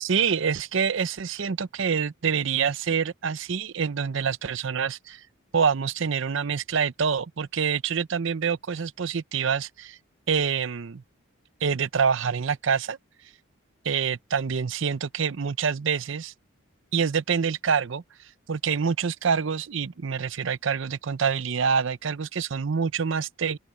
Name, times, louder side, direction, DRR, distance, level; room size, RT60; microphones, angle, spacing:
voice 1, 0.0-5.2 5.5-10.0 10.3-11.0 11.6-13.0 13.8-16.3 16.9-18.0 18.5-23.6, right 6 dB, 60° right, 0.6 m, -26 dB
open air
head